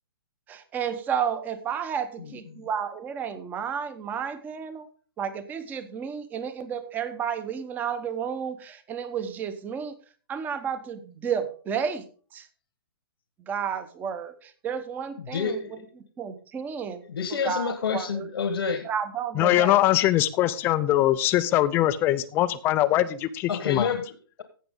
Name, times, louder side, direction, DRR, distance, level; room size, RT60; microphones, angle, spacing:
voice 1, 0.5-4.9 5.2-10.0 10.3-12.1 12.3-12.5 13.5-15.8 16.2-17.0 17.3-18.3 18.8-19.8, right 7 dB, 15° right, 12 dB, 0.9 m, -32 dB
voice 2, 15.3-15.8 17.1-18.9 23.5-24.4, left 6 dB, 80° left, 7 dB, 1.4 m, -28 dB
voice 3, 19.4-23.9, left 14 dB, 20° left, 14 dB, 0.4 m, -22 dB
16.0 x 6.0 x 3.7 m, 0.41 s
hypercardioid pair, 155°, 12 cm